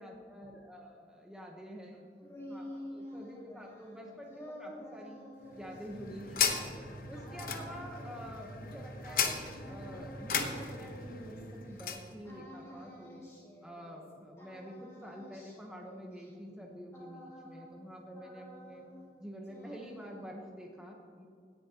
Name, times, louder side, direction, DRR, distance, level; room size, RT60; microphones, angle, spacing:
voice 1, 0.0-5.2 5.5-6.6 7.1-13.2 13.6-18.8 19.2-21.3, equal, 5° right, -1 dB, 0.9 m, -47 dB
sound 1, 1.9-11.8 12.2-14.1 14.4-17.9 18.1-19.2 19.4-20.4, left 1 dB, 15° left, 2.2 m, -50 dB
sound 2, 5.5-12.1, left 6 dB, 55° left, 0.9 m, -36 dB
17.0 x 10.5 x 2.9 m, 2.2 s
head